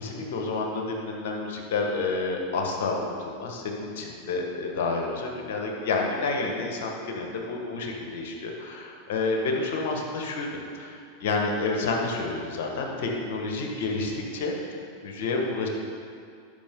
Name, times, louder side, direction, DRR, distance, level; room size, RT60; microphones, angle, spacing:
voice 1, 0.0-15.7, left 3 dB, 65° left, 1 dB, 1.5 m, -29 dB
12.0 x 5.5 x 3.8 m, 2.3 s
hypercardioid pair, 100°, 0 cm